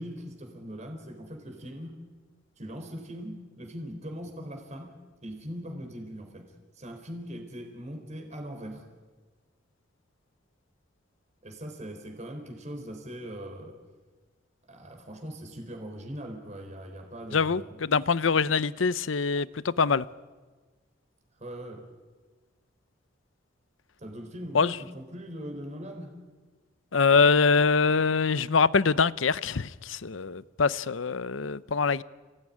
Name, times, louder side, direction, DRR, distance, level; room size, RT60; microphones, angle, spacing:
voice 1, 0.0-2.0 2.6-4.9 5.2-8.8 11.4-13.8 14.7-17.8 21.3-21.9 24.0-26.1, equal, 35° right, 4 dB, 3.9 m, -40 dB
voice 2, 17.3-20.1 24.5-24.8 26.9-32.0, left 5 dB, 80° left, 17 dB, 0.7 m, -24 dB
29.5 x 18.0 x 9.9 m, 1.3 s
head